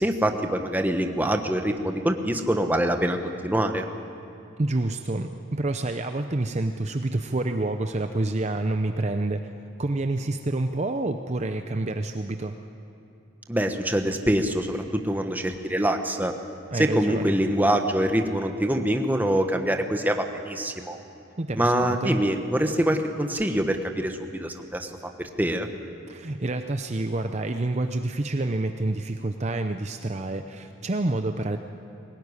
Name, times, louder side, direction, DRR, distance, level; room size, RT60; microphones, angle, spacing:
voice 1, 0.0-3.8 13.5-16.3 16.7-21.0 21.5-24.9 25.4-25.7, right 1 dB, 10° right, 5 dB, 1.2 m, -24 dB
voice 2, 4.6-9.5 9.8-12.5 16.7-17.3 21.4-21.7 22.0-22.2 26.1-31.6, right 2 dB, 35° right, 7 dB, 0.7 m, -28 dB
21.5 x 18.5 x 9.7 m, 2.7 s
head